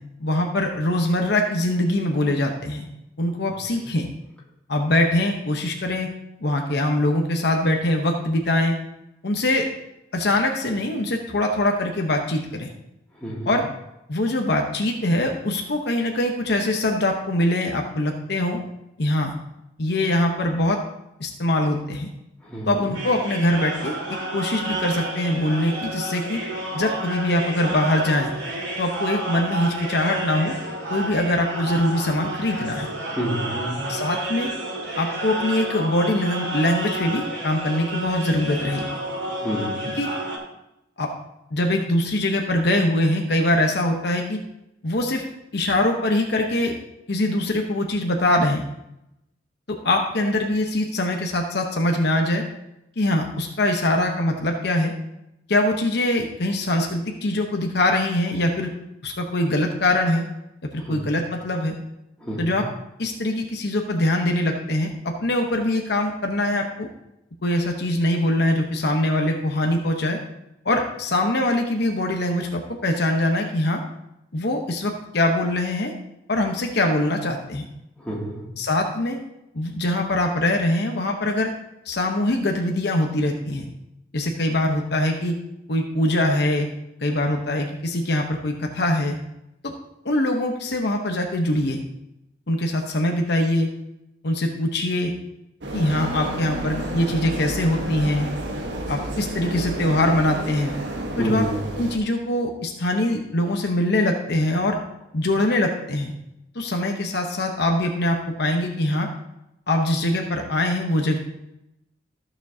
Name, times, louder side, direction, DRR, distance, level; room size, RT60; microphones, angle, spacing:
voice 1, 0.2-2.9 3.2-4.1 4.7-6.1 6.4-8.7 9.2-9.7 10.1-12.7 13.4-13.6 14.1-18.6 19.0-19.3 19.8-20.8 21.2-22.1 22.7-24.0 24.3-26.4 26.7-28.3 28.8-30.5 30.9-32.9 33.9-34.5 35.0-38.9 40.0-40.1 41.0-41.1 41.5-44.4 44.8-45.2 45.5-46.8 47.1-48.6 49.7-52.4 53.0-54.9 55.5-58.7 59.0-60.2 60.7-61.7 62.4-62.7 63.0-66.9 67.4-70.2 70.6-73.8 74.3-75.9 76.3-77.7 78.6-79.2 79.5-81.5 81.9-83.6 84.1-85.4 85.7-86.7 87.0-89.2 89.6-89.7 90.0-91.8 92.5-93.7 94.2-95.1 95.7-98.3 98.9-100.7 101.2-101.5 101.8-104.8 105.1-106.1 106.5-109.1 109.7-111.2, left 1 dB, 60° left, 2 dB, 0.9 m, -23 dB
voice 2, 13.2-13.5 22.4-22.9 33.1-33.8 39.3-39.8 60.8-61.0 62.2-62.6 78.0-78.4 101.1-101.6, right 1 dB, 5° left, -6 dB, 2.4 m, -29 dB
sound 1, 22.9-40.4, right 1 dB, 90° right, 2.3 m, -30 dB
sound 2, 95.6-102.0, right 1 dB, 70° right, 1.3 m, -30 dB
14.0 x 7.0 x 2.8 m, 0.86 s
head